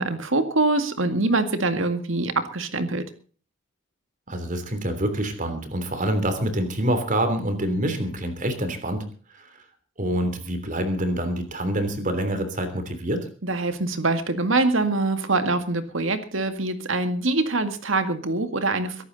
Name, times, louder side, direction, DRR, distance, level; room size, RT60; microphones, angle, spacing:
voice 1, 0.0-3.0 13.4-19.1, right 2 dB, 65° right, 9 dB, 2.0 m, -24 dB
voice 2, 4.3-9.0 9.3-9.5 10.0-13.3, right 1 dB, 40° right, 8 dB, 3.2 m, -26 dB
22.5 x 11.5 x 4.1 m, 0.42 s
head